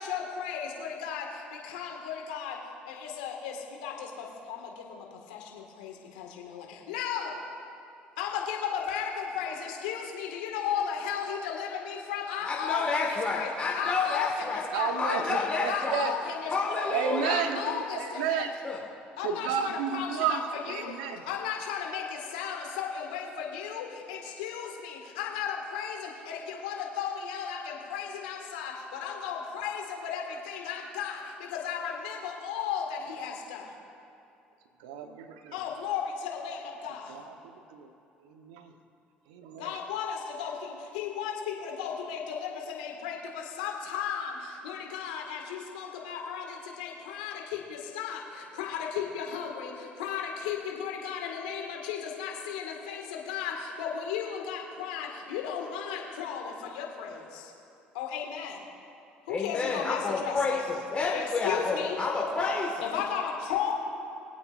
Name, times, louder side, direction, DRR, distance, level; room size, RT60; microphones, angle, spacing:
voice 1, 0.0-2.6 2.9-7.4 8.2-18.5 19.2-20.4 20.7-33.7 35.5-37.2 39.6-57.5 57.9-58.6 59.3-60.6 61.1-62.0 62.8-63.7, left 7 dB, 80° left, 1 dB, 1.8 m, -35 dB
voice 2, 12.4-14.6 15.0-16.0 16.5-17.4 18.6-18.8 59.3-62.8, left 4 dB, 30° left, -2 dB, 1.7 m, -29 dB
voice 3, 14.7-16.1 16.9-18.5 19.2-21.2 34.8-35.5 37.1-37.9 38.2-38.7 39.3-39.8, right 7 dB, 80° right, 6 dB, 1.0 m, -32 dB
23.5 x 8.6 x 2.5 m, 2.7 s
hypercardioid pair, 65°, 4 cm